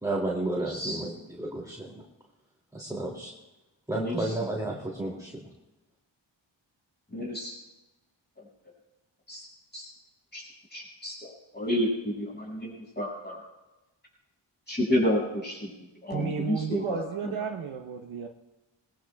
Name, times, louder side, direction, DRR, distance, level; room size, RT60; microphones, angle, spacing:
voice 1, 0.0-2.0 2.7-3.3 3.9-5.5, right 2 dB, 5° right, -3 dB, 2.6 m, -32 dB
voice 2, 0.7-1.0 3.9-4.3 7.1-7.5 8.4-8.5 9.3-9.5 9.7-9.9 10.3-13.4 14.7-17.4, left 1 dB, 20° left, -3 dB, 6.1 m, -31 dB
voice 3, 16.1-18.3, right 6 dB, 85° right, 2 dB, 1.0 m, -33 dB
20.5 x 19.0 x 2.3 m, 1.0 s
cardioid pair, 55°, 48 cm